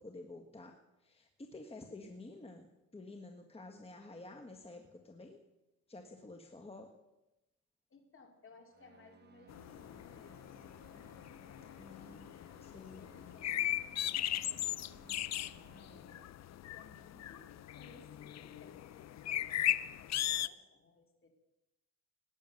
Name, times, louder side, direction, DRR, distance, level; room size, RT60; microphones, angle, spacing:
voice 1, 0.0-2.7 2.9-5.4 5.9-6.9 11.8-12.3 12.6-13.1, left 2 dB, 20° left, 4 dB, 1.6 m, -50 dB
voice 2, 7.9-11.9 12.7-16.2 16.7-21.3, left 3 dB, 45° left, 4 dB, 3.2 m, -61 dB
sound 1, 8.7-16.0, right 6 dB, 35° right, 1.2 m, -63 dB
sound 2, 9.5-20.5, left 12 dB, 60° left, 0.7 m, -38 dB
19.0 x 9.2 x 6.5 m, 0.94 s
cardioid pair, 90°, 30 cm